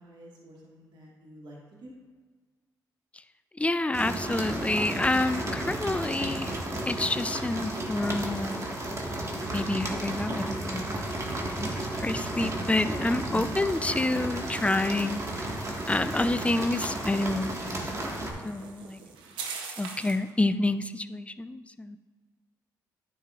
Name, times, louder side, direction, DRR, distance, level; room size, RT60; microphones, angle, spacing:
voice 1, 0.0-1.9 13.2-13.7 17.9-18.1, right 1 dB, 65° right, -4 dB, 1.7 m, -46 dB
voice 2, 3.6-6.6 6.9-8.8 9.5-15.5 15.9-18.0 18.4-19.0 19.8-22.0, left 2 dB, 15° left, 12 dB, 0.4 m, -29 dB
sound 1, 3.9-18.3, right 1 dB, 35° right, 1.6 m, -33 dB
sound 2, 9.6-20.3, right 5 dB, 85° right, 0.8 m, -47 dB
9.8 x 6.4 x 2.4 m, 1.5 s
supercardioid pair, 50°, 8 cm